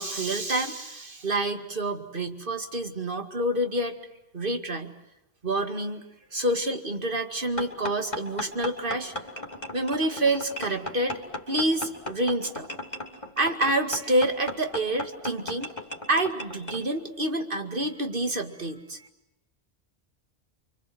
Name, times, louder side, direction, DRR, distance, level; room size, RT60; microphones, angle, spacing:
voice 1, 0.0-4.0 4.3-4.9 5.4-6.0 6.3-9.1 9.7-11.2 11.5-12.7 13.4-15.7 16.1-19.1, right 1 dB, 55° right, 7 dB, 2.4 m, -28 dB
sound 1, 7.6-16.8, left 1 dB, 45° left, 3.5 m, -36 dB
29.5 x 25.0 x 7.9 m, 0.90 s
omnidirectional pair, 1.1 m